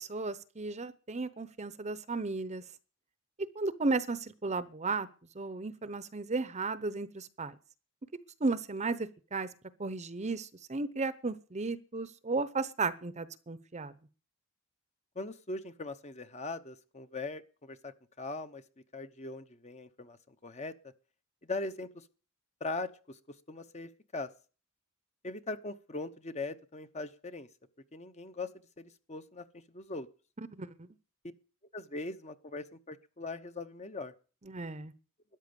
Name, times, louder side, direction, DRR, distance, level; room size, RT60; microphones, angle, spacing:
voice 1, 0.0-2.6 3.5-5.1 5.3-7.5 8.4-9.5 9.8-13.9 30.6-30.9 34.5-34.9, right 3 dB, 30° right, 15 dB, 0.8 m, -34 dB
voice 2, 15.1-18.6 18.9-20.7 21.4-22.1 22.6-23.2 23.5-24.3 25.2-27.5 27.9-28.5 28.8-30.1 31.7-34.1, left 3 dB, 30° left, 10 dB, 0.9 m, -40 dB
13.5 x 10.5 x 7.0 m, 0.37 s
head